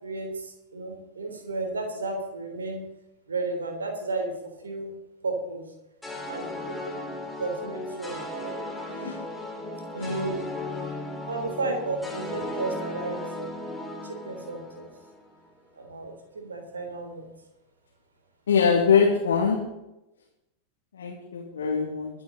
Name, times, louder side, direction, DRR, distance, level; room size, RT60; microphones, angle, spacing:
voice 1, 0.0-2.9 3.3-4.9 5.2-5.6 6.3-7.0 7.4-8.3 9.9-10.4 11.3-13.6 14.0-14.9 15.8-17.3, right 3 dB, 70° right, 3 dB, 3.4 m, -33 dB
sound 1, 6.0-15.3, left 2 dB, 5° left, 2.8 m, -36 dB
voice 2, 8.9-9.2 10.0-10.2 18.5-19.6 20.9-22.1, left 6 dB, 65° left, -2 dB, 2.4 m, -23 dB
23.0 x 8.7 x 4.0 m, 0.92 s
figure-of-eight pair, 90°, 0 cm